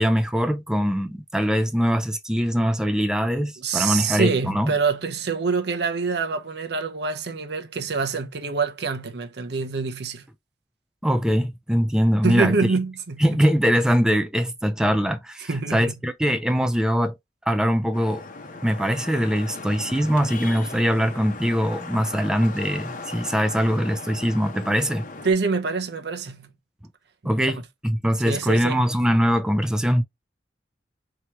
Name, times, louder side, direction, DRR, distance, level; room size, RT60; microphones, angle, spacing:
voice 1, 0.0-4.7 11.0-12.5 13.2-17.2 17.5-18.2 18.6-25.0 27.2-27.6 27.8-30.0, equal, 5° right, 0.5 m, -22 dB
voice 2, 3.6-10.3 12.2-13.4 15.5-16.0 25.2-26.5 27.4-27.5 28.3-28.9, right 4 dB, 65° right, 0.7 m, -26 dB
Vehicle horn car horn honking / Traffic noise roadway noise, 17.9-25.3, left 3 dB, 50° left, 0.8 m, -38 dB
4.7 x 2.9 x 3.0 m
head